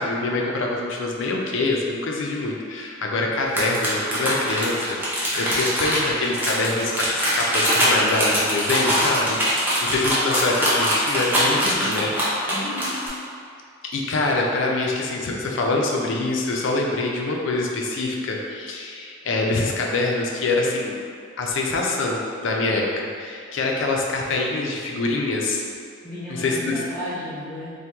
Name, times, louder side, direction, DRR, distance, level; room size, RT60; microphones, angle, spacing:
voice 1, 0.0-12.4 13.9-21.0 21.4-25.6 26.3-26.8, left 2 dB, 65° left, -1 dB, 0.4 m, -25 dB
sound 1, 3.5-13.1, equal, 10° right, 0.5 m, -22 dB
voice 2, 11.7-12.1 12.5-13.0 26.0-27.7, left 1 dB, 5° left, -12 dB, 1.0 m, -34 dB
2.9 x 2.2 x 3.4 m, 2.2 s
head